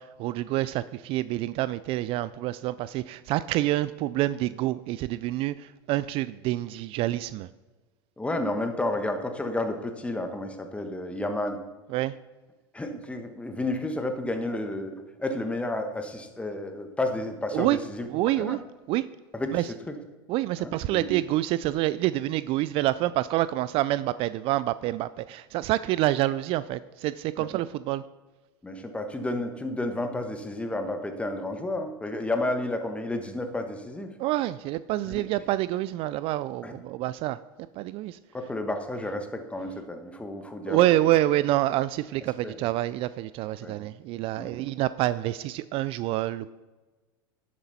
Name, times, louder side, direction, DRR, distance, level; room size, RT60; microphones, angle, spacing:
voice 1, 0.0-7.5 11.9-12.1 17.5-17.8 18.1-18.6 18.9-19.0 19.5-19.6 20.3-28.0 34.2-37.4 37.8-38.2 40.7-46.5, right 15 dB, 50° right, 16 dB, 0.3 m, -27 dB
voice 2, 8.2-11.6 12.7-18.1 18.4-18.6 19.3-20.0 20.6-21.1 27.4-27.5 28.6-34.1 35.0-35.5 36.6-36.8 38.3-41.1 42.4-42.6 43.6-43.8 44.4-44.5, left 2 dB, 10° left, 6 dB, 1.3 m, -31 dB
11.0 x 7.4 x 4.2 m, 1.2 s
hypercardioid pair, 95°, 12 cm